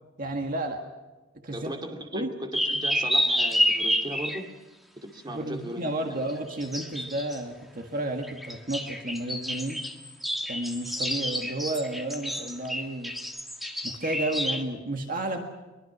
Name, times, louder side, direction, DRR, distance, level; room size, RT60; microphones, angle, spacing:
voice 1, 0.2-0.8 1.4-1.7 2.1-2.3 5.3-9.8 10.5-13.1 13.8-15.4, right 1 dB, 45° right, 4 dB, 1.8 m, -32 dB
voice 2, 1.5-4.5 5.0-6.2, right 1 dB, 20° right, 4 dB, 2.4 m, -37 dB
sound 1, 2.5-4.4 6.3-7.4 8.2-14.6, equal, ahead, 1.7 m, -29 dB
23.5 x 23.0 x 6.1 m, 1.2 s
head